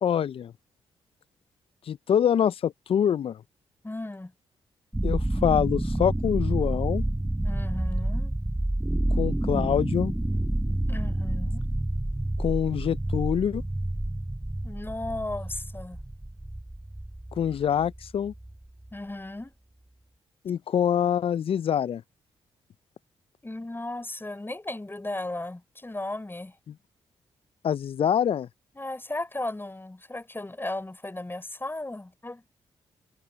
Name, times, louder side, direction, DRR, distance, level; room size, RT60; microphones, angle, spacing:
voice 1, 0.0-0.5 1.9-3.4 5.0-7.0 9.2-10.1 12.4-13.6 17.4-18.3 20.4-22.0 27.6-28.5, left 9 dB, 55° left, 0.5 m, -25 dB
voice 2, 3.8-4.3 7.4-8.4 10.9-11.7 14.6-16.0 18.9-19.5 23.4-26.6 28.7-32.4, left 2 dB, 20° left, 5.6 m, -35 dB
sound 1, 4.9-18.9, right 1 dB, 10° right, 1.2 m, -29 dB
supercardioid pair, 50°, 11 cm